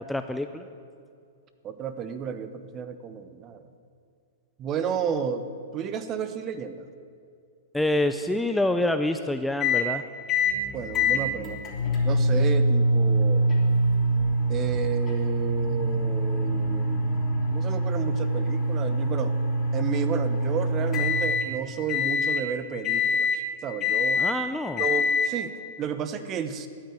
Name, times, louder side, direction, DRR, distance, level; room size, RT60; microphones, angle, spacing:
voice 1, 0.1-0.7 7.7-10.0 24.2-24.8, left 1 dB, 5° left, 8 dB, 0.5 m, -26 dB
voice 2, 1.6-3.7 4.6-5.5 5.7-6.9 10.7-11.6 12.0-13.5 14.5-17.0 17.5-19.3 19.7-24.2 24.8-26.7, right 7 dB, 30° right, 11 dB, 1.0 m, -32 dB
sound 1, 9.6-9.9 10.3-10.6 10.9-21.5 21.9-22.4 22.8-23.4 23.8-24.4 24.8-25.3, equal, 25° left, 3.0 m, -24 dB
sound 2, 10.4-17.6, left 3 dB, 50° left, 2.8 m, -42 dB
13.0 x 9.4 x 9.4 m, 2.4 s
hypercardioid pair, 135°, 0 cm